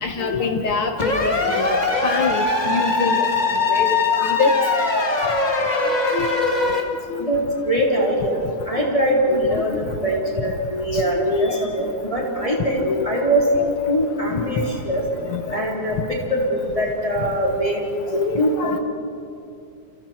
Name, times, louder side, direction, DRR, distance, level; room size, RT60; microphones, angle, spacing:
voice 1, 0.0-3.3 3.7-4.5 6.1-6.4 6.7-6.8 7.1-7.3 8.8-8.9 9.3-9.4 9.7-9.8 10.1-10.5 10.9-11.6 12.8-13.1 13.6-13.7 15.3-15.6 18.1-18.8, left 4 dB, 70° left, 5 dB, 1.2 m, -25 dB
sound 1, 1.0-6.8, left 3 dB, 55° left, 0.4 m, -21 dB
voice 2, 7.2-13.5 13.9-15.0 15.5-18.8, equal, 10° left, -3 dB, 3.4 m, -22 dB
29.5 x 27.0 x 4.5 m, 2.5 s
omnidirectional pair, 4.0 m